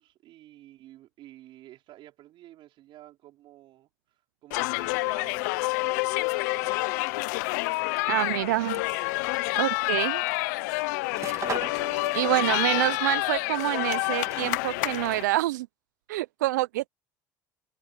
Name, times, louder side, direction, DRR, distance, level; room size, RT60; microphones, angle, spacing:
voice 1, 0.0-7.4 8.1-8.8 10.2-11.1 11.7-13.6, right 14 dB, 60° right, 5.0 m, -52 dB
sound 1, 4.5-15.2, left 24 dB, 75° left, 0.8 m, -28 dB
sound 2, 7.8-14.6, right 6 dB, 35° right, 3.0 m, -43 dB
voice 2, 8.1-8.8 9.6-10.2 12.1-15.7 16.1-16.9, right 17 dB, 85° right, 0.7 m, -27 dB
hypercardioid pair, 70°, 10 cm